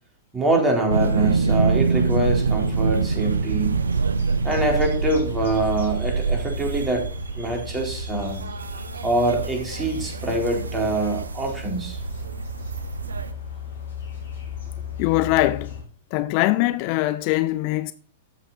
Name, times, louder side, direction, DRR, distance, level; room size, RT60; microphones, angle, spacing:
voice 1, 0.3-3.8 4.4-7.0 7.4-8.4 9.0-12.0, right 2 dB, 15° right, 4.3 m, -24 dB
sound 1, 0.9-13.3, right 4 dB, 80° right, 0.7 m, -25 dB
sound 2, 1.1-15.8, left 6 dB, 75° left, 5.2 m, -37 dB
voice 2, 15.0-15.8 16.1-17.9, left 17 dB, 45° left, 0.5 m, -22 dB
13.0 x 7.7 x 4.3 m
figure-of-eight pair, 105°, 0 cm